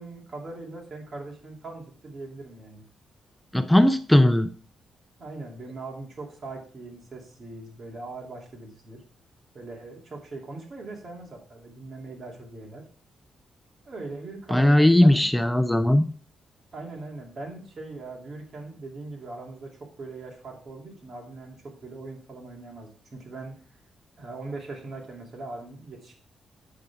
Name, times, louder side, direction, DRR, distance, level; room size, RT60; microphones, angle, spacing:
voice 1, 0.0-2.8 5.2-9.0 9.5-12.8 13.8-15.3 16.7-23.5 24.2-26.2, right 3 dB, 45° right, 0 dB, 2.6 m, -40 dB
voice 2, 3.5-4.5 14.5-16.1, left 1 dB, 5° left, 10 dB, 0.5 m, -18 dB
8.4 x 6.6 x 3.5 m, 0.43 s
cardioid pair, 115°, 0 cm